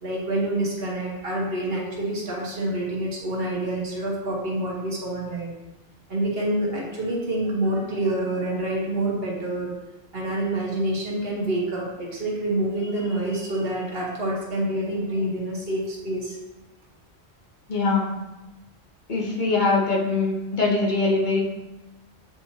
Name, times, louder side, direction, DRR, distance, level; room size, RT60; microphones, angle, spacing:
voice 1, 0.0-5.6 6.1-9.7 10.1-16.4, right 1 dB, 65° right, -3 dB, 1.6 m, -27 dB
voice 2, 17.7-18.1 19.1-21.4, left 3 dB, 50° left, -2 dB, 1.2 m, -22 dB
8.5 x 4.4 x 2.9 m, 1.0 s
omnidirectional pair, 1.1 m